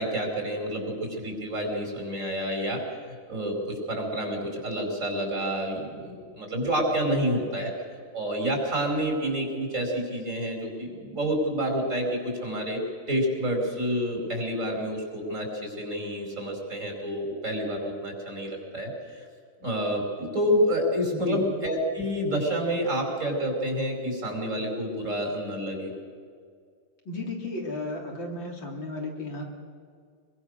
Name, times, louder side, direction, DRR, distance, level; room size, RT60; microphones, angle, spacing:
voice 1, 0.0-2.8 3.3-7.7 8.1-12.8 13.1-19.3 19.6-25.9, equal, 35° right, 1 dB, 5.6 m, -28 dB
voice 2, 21.1-21.4 27.1-29.4, left 2 dB, 65° left, 0 dB, 4.0 m, -33 dB
25.0 x 22.5 x 6.6 m, 2.1 s
omnidirectional pair, 2.2 m